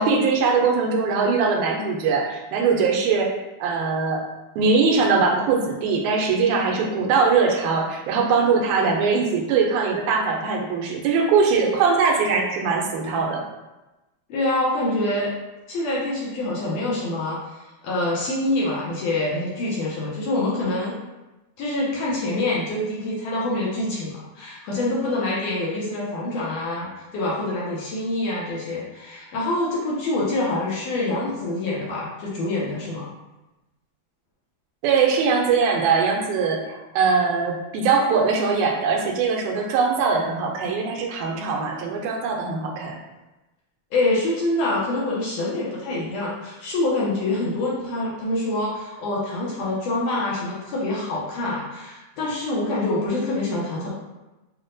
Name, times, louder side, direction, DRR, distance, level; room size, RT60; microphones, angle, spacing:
voice 1, 0.0-3.3 3.6-4.2 4.6-13.4 34.8-43.0, right 5 dB, 85° right, 0 dB, 2.0 m, -21 dB
voice 2, 14.3-15.3 15.7-17.6 17.8-21.0 21.6-33.1 43.9-53.9, left 2 dB, 75° left, -6 dB, 1.7 m, -26 dB
5.7 x 2.1 x 2.6 m, 1.0 s
omnidirectional pair, 3.3 m